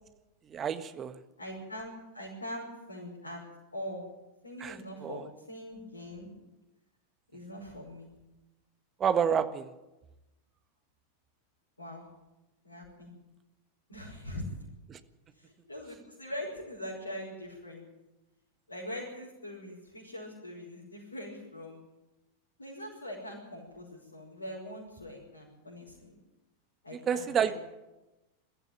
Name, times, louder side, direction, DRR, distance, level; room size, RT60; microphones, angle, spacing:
voice 1, 0.5-1.2 4.6-5.3 9.0-9.7 14.9-15.0 27.1-27.5, right 7 dB, 25° right, 11 dB, 1.5 m, -29 dB
voice 2, 1.4-3.4 3.7-4.0 4.4-6.3 7.3-8.1 11.8-12.1 12.6-13.1 13.9-14.4 15.3-17.9 18.7-21.8 22.6-26.2 26.8-27.5, left 1 dB, 80° left, -4 dB, 5.6 m, -42 dB
22.0 x 14.5 x 9.1 m, 1.0 s
figure-of-eight pair, 90°, 0 cm